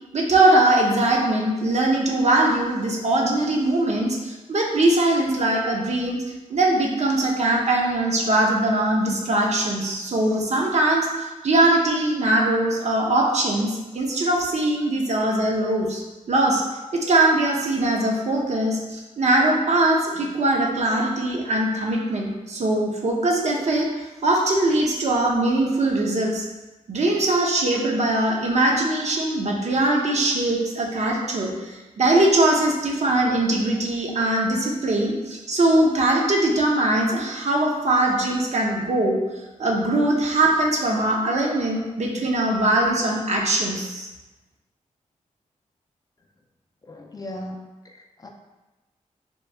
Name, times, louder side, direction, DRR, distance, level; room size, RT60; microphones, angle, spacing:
voice 1, 0.1-6.2 6.5-16.0 16.3-16.6 16.9-26.5 26.9-39.2 39.6-44.1, right 1 dB, 55° right, -1 dB, 0.6 m, -21 dB
voice 2, 46.8-47.6 47.8-48.3, left 1 dB, 30° left, 2 dB, 0.4 m, -37 dB
3.0 x 2.3 x 3.3 m, 1.1 s
cardioid pair, 65°, 14 cm